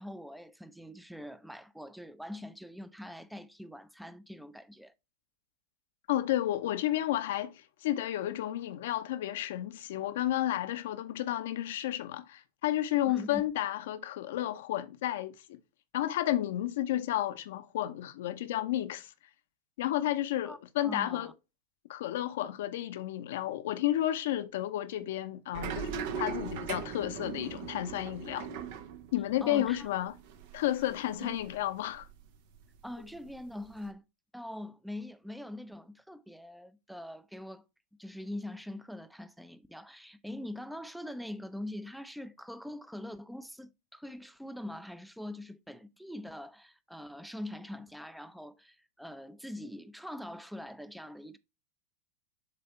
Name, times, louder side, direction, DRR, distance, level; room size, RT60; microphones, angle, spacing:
voice 1, 0.0-4.9 13.1-13.5 20.4-21.3 29.4-29.9 31.2-31.4 32.8-34.0 34.3-37.6 38.0-51.4, left 1 dB, ahead, 0.6 m, -43 dB
voice 2, 6.1-15.6 15.9-19.1 19.8-21.3 21.9-28.5 29.1-30.1 30.5-32.1, left 13 dB, 65° left, 0.8 m, -32 dB
sound 1, 25.5-32.3 32.6-33.9, right 6 dB, 60° right, 1.0 m, -40 dB
7.7 x 3.4 x 4.3 m
figure-of-eight pair, 90°, 0 cm